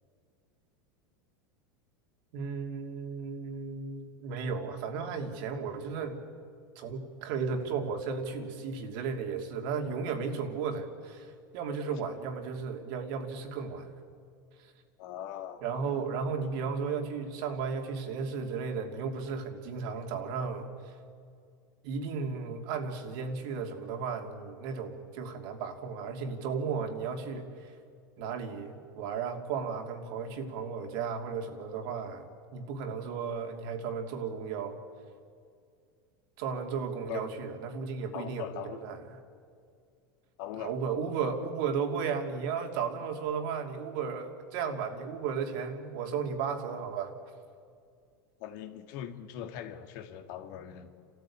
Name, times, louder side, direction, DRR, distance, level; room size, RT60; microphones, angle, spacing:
voice 1, 2.3-6.3 6.7-14.0 14.6-14.7 15.6-20.9 21.8-27.8 28.2-34.8 36.4-39.0 40.6-47.1, right 5 dB, 65° right, 3 dB, 2.8 m, -34 dB
voice 2, 15.0-16.0 37.1-37.3 38.1-39.0 40.4-40.8 48.4-50.9, left 10 dB, 65° left, 7 dB, 1.9 m, -41 dB
29.5 x 13.5 x 8.6 m, 2.3 s
supercardioid pair, 125°, 11 cm